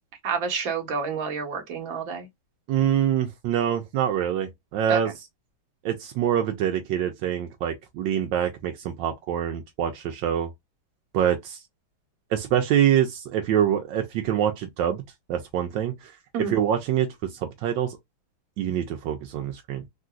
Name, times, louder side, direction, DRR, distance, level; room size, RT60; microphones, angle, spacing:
voice 1, 0.2-2.3 4.9-5.0 16.3-16.5, right 5 dB, 50° right, 1.3 m, -29 dB
voice 2, 2.7-5.1 5.8-10.5 11.1-11.6 12.3-15.0 15.3-16.1 16.4-18.0 18.6-19.8, right 10 dB, 80° right, 1.3 m, -25 dB
3.7 x 2.6 x 2.2 m
omnidirectional pair, 2.1 m